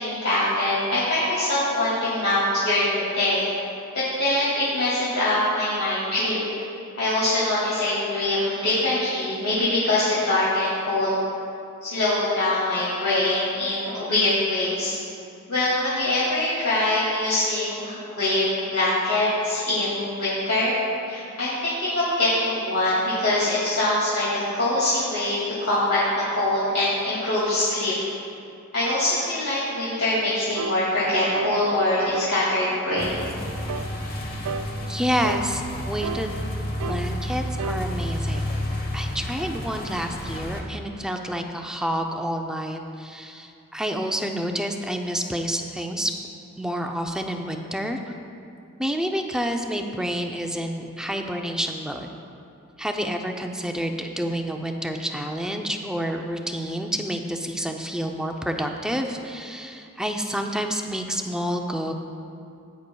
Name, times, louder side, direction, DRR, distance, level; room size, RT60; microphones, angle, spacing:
voice 1, 0.0-3.5 3.9-6.4 7.0-11.1 11.8-15.0 15.5-20.8 21.1-26.0 26.3-28.0 28.7-33.2, left 1 dB, 65° left, -10 dB, 2.3 m, -23 dB
sound 1, 30.5-30.8 31.3-31.6 32.1-32.4 32.9-33.1 33.7-33.9 34.4-34.7 35.2-35.5 36.0-36.2 36.8-37.0 37.6-37.8 38.3-38.4, right 4 dB, 80° right, 0.4 m, -31 dB
sound 2, 33.0-40.6, left 1 dB, 40° left, 1.1 m, -31 dB
voice 2, 34.9-36.4 36.9-38.5 38.9-46.2 46.6-48.0 48.8-52.1 52.8-61.9, equal, 5° right, 3 dB, 0.4 m, -29 dB
14.5 x 9.3 x 2.3 m, 2.5 s
head